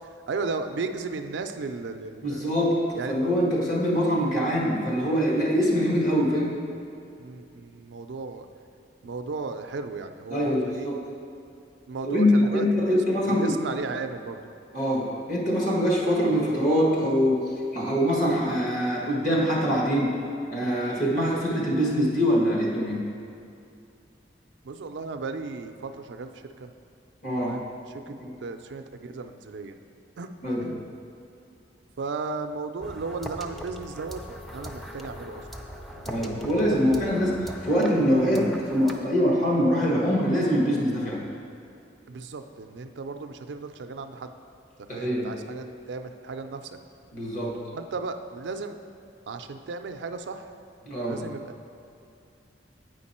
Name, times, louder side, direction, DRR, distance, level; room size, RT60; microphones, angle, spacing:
voice 1, 0.3-2.4 3.0-3.1 7.2-8.5 9.0-10.9 11.9-14.4 24.6-26.7 27.4-29.8 30.2-30.3 30.6-30.9 32.0-34.2 34.5-35.4 35.9-36.5 36.8-37.1 42.1-44.3 44.9-46.8 47.7-48.8 49.3-50.5 51.0-51.5, right 4 dB, 75° right, 8 dB, 0.4 m, -35 dB
voice 2, 2.2-2.8 3.1-6.5 10.3-11.0 12.0-13.5 14.7-17.4 17.7-20.1 20.5-23.0 27.2-27.5 28.2-28.3 30.4-30.6 36.0-41.2 44.9-45.3 47.1-47.6 50.8-51.2, equal, 45° left, -3 dB, 1.5 m, -24 dB
sound 1, 32.8-39.0, equal, ahead, 0.4 m, -40 dB
8.9 x 5.2 x 4.2 m, 2.6 s
head